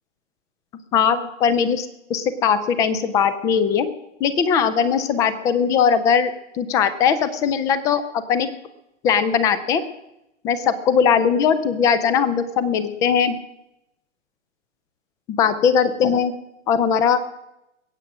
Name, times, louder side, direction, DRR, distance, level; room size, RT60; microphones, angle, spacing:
voice 1, 0.9-3.9 4.2-8.0 8.3-8.5 9.0-9.8 10.4-13.4 15.4-16.3 16.7-17.2, left 7 dB, 10° left, 14 dB, 0.4 m, -19 dB
21.5 x 8.9 x 6.1 m, 0.88 s
figure-of-eight pair, 115°, 39 cm